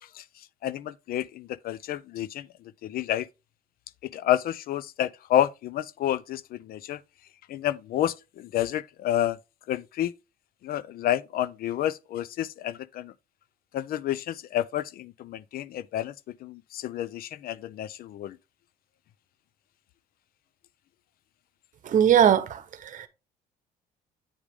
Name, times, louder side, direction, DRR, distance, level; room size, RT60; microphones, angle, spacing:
voice 1, 0.6-2.5 2.8-3.3 4.1-7.0 7.5-9.4 9.7-10.1 10.6-13.1 13.7-16.1 16.4-18.4, left 12 dB, 60° left, 0.5 m, -29 dB
voice 2, 21.8-23.1, right 9 dB, 50° right, 1.1 m, -21 dB
8.8 x 4.9 x 3.5 m
cardioid pair, 110°, 17 cm